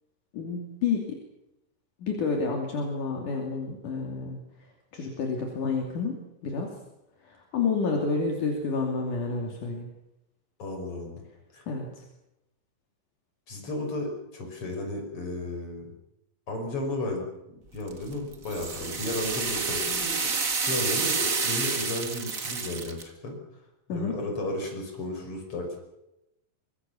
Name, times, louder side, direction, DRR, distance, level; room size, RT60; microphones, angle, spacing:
voice 1, 0.3-1.2 2.0-4.4 4.9-6.7 7.2-9.9 11.7-12.0 23.9-24.1, left 4 dB, 65° left, 1 dB, 4.1 m, -29 dB
voice 2, 10.6-11.2 11.5-11.6 13.5-15.9 16.5-20.1 20.7-23.4 23.9-25.8, left 2 dB, 40° left, 2 dB, 6.4 m, -34 dB
sound 1, 17.9-23.0, right 5 dB, 35° right, 1.5 m, -29 dB
24.0 x 23.0 x 7.1 m, 0.90 s
omnidirectional pair, 4.0 m